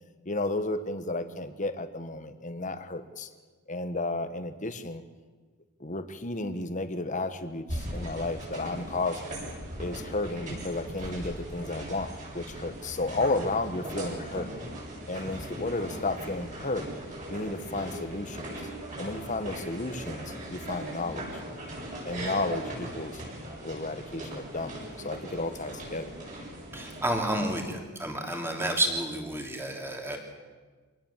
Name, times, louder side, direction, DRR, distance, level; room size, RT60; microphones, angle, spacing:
voice 1, 0.2-3.3 3.7-5.0 5.8-9.3 9.8-14.5 15.1-16.9 17.3-18.5 19.0-21.3 22.0-23.2 23.6-26.1, left 2 dB, 35° left, 10 dB, 1.5 m, -33 dB
sound 1, 7.7-27.6, right 1 dB, 35° right, 7.5 m, -39 dB
voice 2, 26.7-30.2, right 1 dB, 10° right, 2 dB, 3.2 m, -30 dB
25.5 x 19.0 x 7.5 m, 1.4 s
head